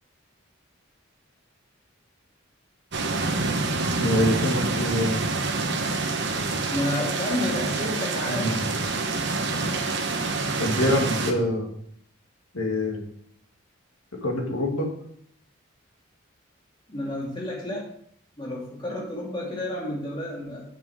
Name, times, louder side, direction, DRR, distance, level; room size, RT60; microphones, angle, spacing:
sound 1, 2.9-11.3, right 3 dB, 55° right, 1.0 m, -27 dB
voice 1, 4.0-5.2 8.3-8.7 10.6-11.7 12.5-13.0 14.1-14.9, left 1 dB, 80° left, 1 dB, 1.9 m, -25 dB
voice 2, 6.7-8.5 16.9-17.9 18.4-20.6, left 1 dB, 20° left, -4 dB, 2.6 m, -30 dB
7.5 x 5.9 x 4.8 m, 0.65 s
head